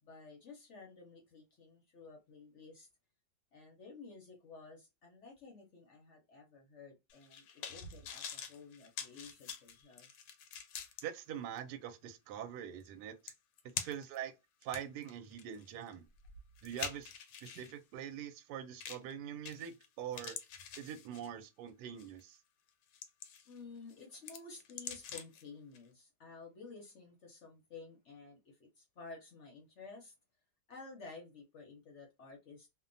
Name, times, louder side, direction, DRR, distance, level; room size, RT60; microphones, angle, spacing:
voice 1, 0.0-2.9 3.5-10.1 23.5-30.1 30.7-32.7, left 4 dB, 55° left, 0.8 m, -53 dB
sound 1, 7.1-11.0 11.6-11.7 12.9-13.0 13.3-14.2 14.6-17.7 18.8-19.1 19.5-19.9 20.1-21.5 22.0-22.2 22.7-23.6 23.9-25.4 25.7-25.8, left 7 dB, 85° left, 1.3 m, -45 dB
voice 2, 11.0-13.3 13.6-14.3 14.6-16.1 16.6-17.1 17.4-20.4 20.8-22.4, right 9 dB, 75° right, 1.1 m, -44 dB
2.8 x 2.1 x 2.5 m
omnidirectional pair, 1.9 m